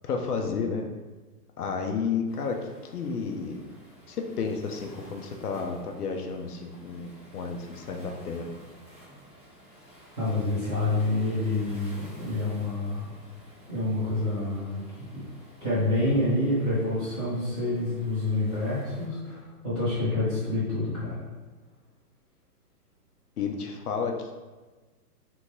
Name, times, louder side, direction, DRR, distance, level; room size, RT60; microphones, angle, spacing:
voice 1, 0.0-0.9 1.6-3.6 4.1-8.5 23.4-24.3, left 5 dB, 65° left, 2 dB, 0.7 m, -31 dB
Waves surf, 2.3-19.0, equal, 5° left, 0.6 m, -51 dB
voice 2, 10.2-13.1 13.7-14.8 15.1-15.2 15.6-21.3, left 2 dB, 10° right, -11 dB, 1.2 m, -27 dB
3.5 x 2.7 x 4.7 m, 1.3 s
hypercardioid pair, 175°, 48 cm